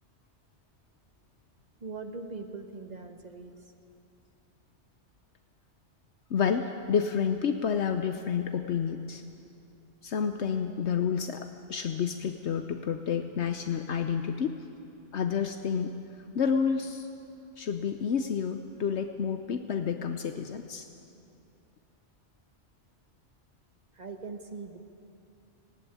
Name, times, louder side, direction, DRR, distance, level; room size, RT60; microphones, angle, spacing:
voice 1, 1.8-3.7 23.9-24.8, right 4 dB, 35° right, 6 dB, 1.5 m, -41 dB
voice 2, 6.3-9.2 10.0-14.6 15.1-15.9 16.3-17.1 17.6-20.9, left 7 dB, 75° left, 7 dB, 1.1 m, -29 dB
18.0 x 16.5 x 9.8 m, 2.7 s
omnidirectional pair, 1.2 m